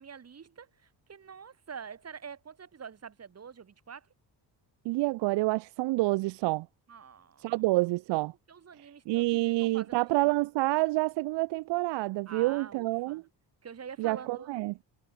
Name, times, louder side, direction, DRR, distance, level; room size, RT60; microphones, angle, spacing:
voice 1, 0.0-4.1 6.9-7.6 8.5-10.4 12.3-13.2 13.6-14.6, right 6 dB, 35° right, 5.7 m, -46 dB
voice 2, 4.8-6.7 7.4-8.3 8.8-13.2 14.0-14.8, right 20 dB, 75° right, 0.5 m, -28 dB
cardioid pair, 135°, 42 cm